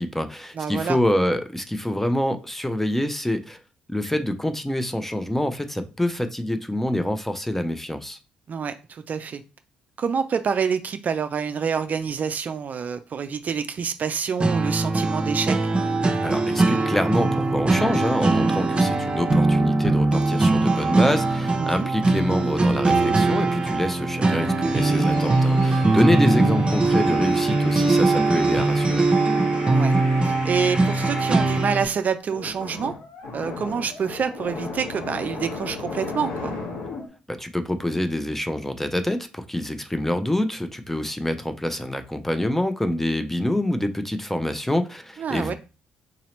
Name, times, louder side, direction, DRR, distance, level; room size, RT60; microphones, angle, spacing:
voice 1, 0.0-3.6 3.9-8.2 16.2-29.1 37.3-45.5, left 1 dB, 10° left, 0.6 m, -26 dB
voice 2, 0.6-1.0 8.5-9.4 10.0-15.6 21.6-21.9 29.6-29.9 30.2-32.9 33.3-36.5 45.2-45.5, right 6 dB, 50° right, 0.3 m, -27 dB
sound 1, 14.4-31.8, right 2 dB, 30° right, 0.7 m, -21 dB
sound 2, 24.6-31.8 32.3-37.1, left 3 dB, 75° left, 1.0 m, -36 dB
3.9 x 2.8 x 3.0 m
hypercardioid pair, 50°, 4 cm